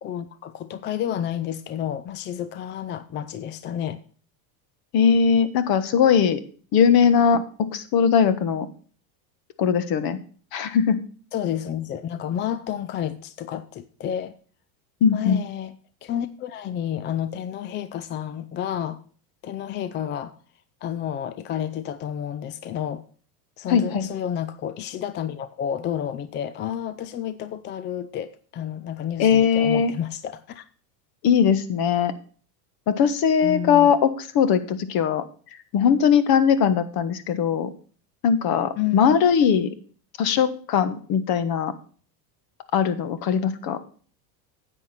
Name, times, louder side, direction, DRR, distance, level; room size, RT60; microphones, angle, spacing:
voice 1, 0.0-4.0 11.3-14.3 15.0-15.7 16.0-19.0 19.4-20.3 20.8-23.0 23.6-30.7 33.4-34.0 38.8-39.2, left 10 dB, 25° left, 0.4 m, -30 dB
voice 2, 4.9-6.4 6.7-8.7 9.6-10.2 10.5-11.0 15.0-15.4 23.7-24.0 29.2-29.9 31.2-32.1 32.9-35.2 35.7-37.7 38.2-39.7 40.2-41.7 42.7-43.8, left 7 dB, 45° left, 1.4 m, -20 dB
9.7 x 8.1 x 4.3 m
supercardioid pair, 105°, 50 cm